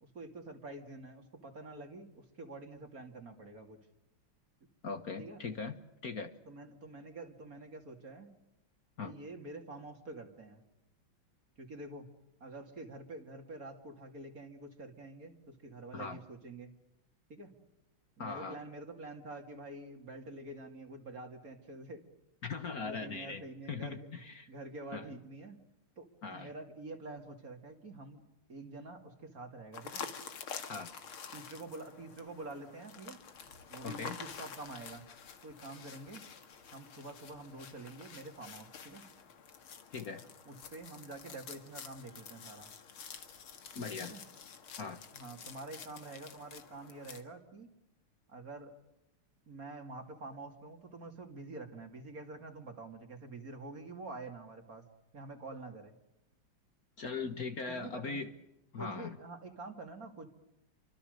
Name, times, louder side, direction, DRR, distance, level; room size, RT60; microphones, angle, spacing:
voice 1, 0.0-3.8 5.2-5.4 6.5-8.3 9.0-10.6 11.6-12.1 12.4-16.7 17.3-17.5 18.2-22.0 22.8-24.2 24.5-25.6 26.0-28.2 28.5-30.1 31.3-33.2 33.7-35.0 35.4-36.2 36.7-39.0 40.5-42.7 44.0-44.2 45.1-47.7 48.3-48.7 49.5-54.8 55.1-55.9 57.7-58.2 58.8-60.3, right 2 dB, 45° right, 5 dB, 3.1 m, -47 dB
voice 2, 4.8-6.3 9.0-9.1 15.9-16.2 18.2-18.6 22.4-24.5 24.9-25.2 26.2-26.5 30.7-30.9 33.8-34.2 39.9-40.2 43.7-44.1 44.8-45.0 57.0-58.3 58.7-59.2, left 4 dB, 50° left, 8 dB, 1.7 m, -40 dB
sound 1, 29.7-47.2, left 6 dB, 90° left, 2.7 m, -49 dB
29.0 x 25.0 x 6.6 m, 0.91 s
omnidirectional pair, 2.3 m